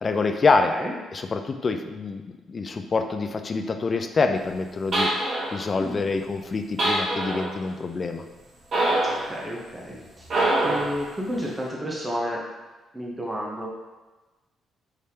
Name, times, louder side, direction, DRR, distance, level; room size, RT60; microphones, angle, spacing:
voice 1, 0.0-0.7 1.1-8.2, left 4 dB, 40° left, 6 dB, 0.4 m, -26 dB
sound 1, 4.9-5.7 6.8-7.5 8.7-9.3 10.3-11.0, right 1 dB, 55° right, 1.3 m, -24 dB
voice 2, 9.2-10.3 10.6-12.4 12.9-13.7, equal, 15° right, -4 dB, 0.8 m, -31 dB
4.9 x 3.4 x 2.8 m, 1.2 s
cardioid pair, 90°, 0 cm